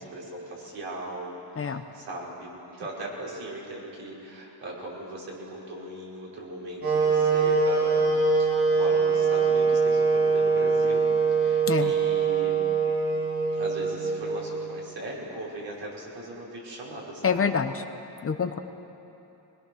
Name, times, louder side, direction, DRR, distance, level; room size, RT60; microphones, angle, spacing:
voice 1, 0.0-11.1 11.4-12.7 13.5-17.4, right 1 dB, 70° right, -4 dB, 5.5 m, -39 dB
Wind instrument woodwind instrument, 6.8-14.8, right 4 dB, 55° right, 4.6 m, -23 dB
voice 2, 17.2-17.8 18.2-18.6, left 6 dB, 30° left, 8 dB, 0.8 m, -26 dB
23.0 x 21.0 x 6.4 m, 3.0 s
cardioid pair, 140°, 43 cm